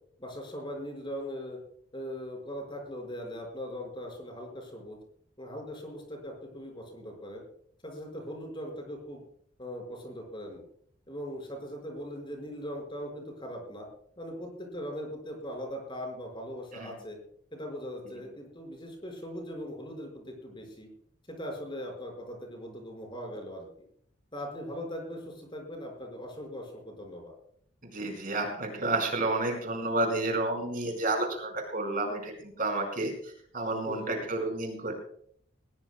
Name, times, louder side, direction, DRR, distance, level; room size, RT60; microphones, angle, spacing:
voice 1, 0.2-1.6 1.9-5.0 5.4-7.4 7.8-9.2 9.6-10.6 11.1-13.9 14.2-17.2 17.5-20.9 21.3-23.7 24.3-27.3 33.9-34.2, equal, 25° left, 2 dB, 5.3 m, -40 dB
voice 2, 27.8-34.9, right 2 dB, 45° right, 3 dB, 4.8 m, -31 dB
20.5 x 20.5 x 2.2 m, 0.63 s
head